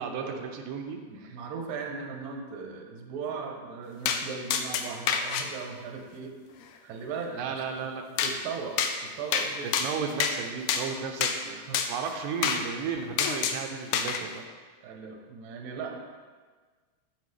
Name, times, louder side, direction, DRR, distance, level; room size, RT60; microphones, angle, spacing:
voice 1, 0.0-1.4 7.3-8.2 9.6-14.4, right 6 dB, 90° right, 4 dB, 2.3 m, -34 dB
voice 2, 1.1-6.3 6.8-7.9 8.2-8.8 9.0-9.8 11.4-11.8 12.8-13.0 14.0-14.1 14.8-16.0, right 5 dB, 70° right, 3 dB, 2.1 m, -38 dB
sound 1, 4.1-4.2 4.5-5.5 8.2-8.3 8.8-8.9 9.3-9.5 9.7-10.4 10.7-10.8 11.2-11.4 11.7-11.9 12.4-12.6 13.2-13.6 13.9-14.2, left 7 dB, 90° left, 1.6 m, -26 dB
8.7 x 7.6 x 3.3 m, 1.5 s
omnidirectional pair, 3.8 m